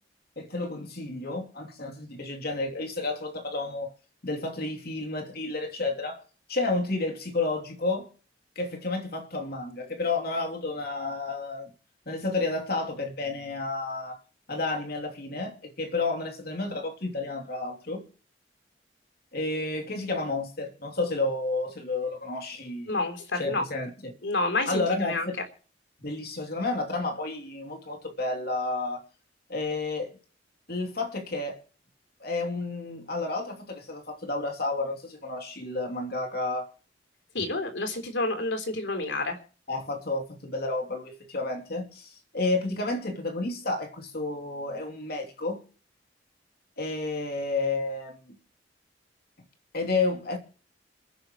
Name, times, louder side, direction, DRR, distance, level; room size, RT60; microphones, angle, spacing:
voice 1, 0.4-3.9 4.2-6.2 6.5-8.1 8.5-11.7 12.1-14.2 14.5-18.0 19.3-22.9 23.3-24.1 24.7-25.4 26.0-29.0 29.5-30.2 30.7-31.6 32.2-36.7 39.7-45.6 46.8-48.4 49.7-50.4, left 3 dB, 60° left, 3.0 m, -31 dB
voice 2, 22.9-23.6 24.2-25.3 37.3-39.4, left 2 dB, 80° left, 3.5 m, -29 dB
27.5 x 10.5 x 3.1 m
head